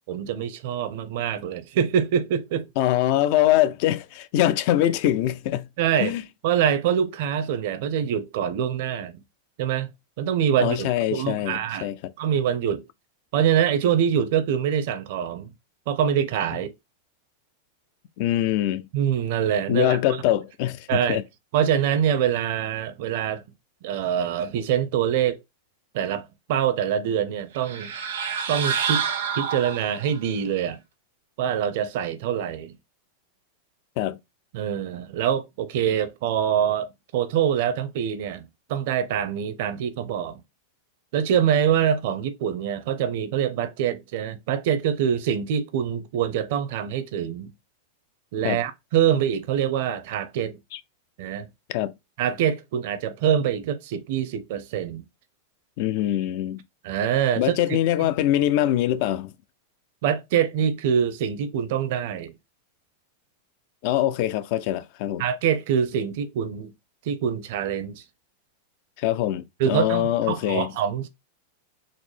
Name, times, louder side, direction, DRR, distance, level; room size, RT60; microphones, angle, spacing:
voice 1, 0.1-2.7 5.8-6.1 6.4-9.2 9.6-9.9 10.2-11.9 12.2-12.9 13.3-15.5 15.9-16.7 18.9-20.0 20.9-21.2 21.5-23.4 23.8-25.4 25.9-27.9 28.5-29.0 29.3-30.8 31.4-32.7 34.5-38.4 38.7-40.4 41.1-47.5 48.3-50.6 51.2-51.5 52.2-55.0 56.8-57.5 60.0-62.3 65.2-66.7 67.1-68.0 69.6-71.1, right 9 dB, 60° right, 0.6 m, -24 dB
voice 2, 2.8-5.7 6.0-6.2 10.6-12.1 18.2-18.9 19.7-21.2 34.0-34.2 48.4-48.6 50.7-50.8 51.7-51.9 55.8-56.6 57.4-59.3 63.8-65.2 69.0-70.7, left 13 dB, 55° left, 0.3 m, -23 dB
sound 1, 27.5-30.2, right 7 dB, 85° right, 1.0 m, -28 dB
3.9 x 2.0 x 3.1 m
supercardioid pair, 135°, 0 cm